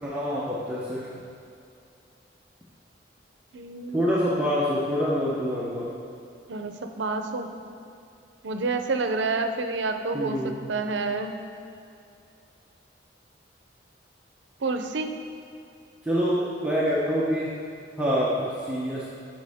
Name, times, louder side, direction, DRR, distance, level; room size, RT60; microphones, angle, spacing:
voice 1, 0.0-1.1 3.9-5.9 10.1-10.6 16.0-17.6 18.0-19.1, equal, 5° right, -8 dB, 0.8 m, -26 dB
voice 2, 3.5-4.0 6.5-7.5 8.4-10.4 10.7-11.4 14.6-15.1, right 3 dB, 80° right, 6 dB, 0.6 m, -28 dB
12.0 x 5.3 x 3.5 m, 2.4 s
head